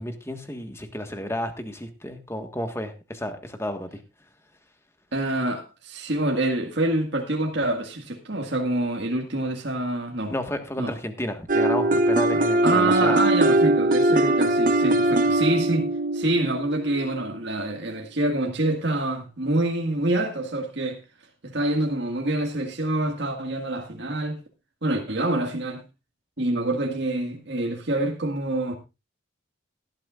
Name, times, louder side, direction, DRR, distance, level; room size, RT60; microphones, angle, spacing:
voice 1, 0.0-4.0 10.3-13.2, left 1 dB, 15° left, 1.5 m, -32 dB
voice 2, 5.1-10.3 10.8-11.0 12.3-15.9 16.1-21.0 21.4-24.4 24.8-25.8 26.4-28.8, right 1 dB, 65° right, 1.9 m, -26 dB
sound 1, 11.5-17.3, right 1 dB, 45° right, 0.8 m, -21 dB
17.5 x 12.0 x 2.5 m
head